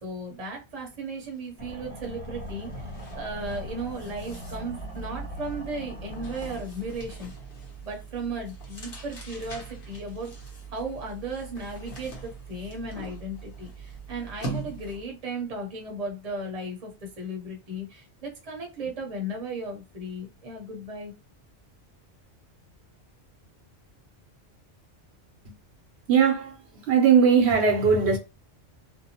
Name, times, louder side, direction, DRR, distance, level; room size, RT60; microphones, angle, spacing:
voice 1, 0.0-7.3 7.8-16.9 17.2-21.1, right 2 dB, 35° right, 0.8 m, -36 dB
sound 1, 1.3-1.4 1.8-15.2, right 3 dB, 55° left, 1.0 m, -42 dB
sound 2, 1.6-6.6, equal, 10° left, 1.2 m, -40 dB
voice 2, 26.1-26.6 26.9-28.2, right 6 dB, 70° right, 0.9 m, -19 dB
2.6 x 2.1 x 2.8 m
omnidirectional pair, 1.1 m